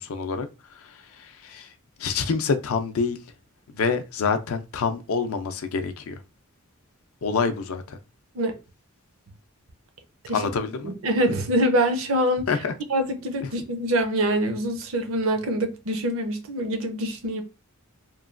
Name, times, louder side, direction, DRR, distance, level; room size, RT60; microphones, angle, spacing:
voice 1, 0.0-1.7 2.0-3.2 3.7-6.2 7.2-8.0 10.3-10.9 12.5-12.7 13.4-13.5, left 5 dB, 70° left, 0.4 m, -27 dB
voice 2, 10.8-12.5 12.9-17.4, right 1 dB, 65° right, 0.5 m, -25 dB
3.0 x 2.2 x 2.4 m
head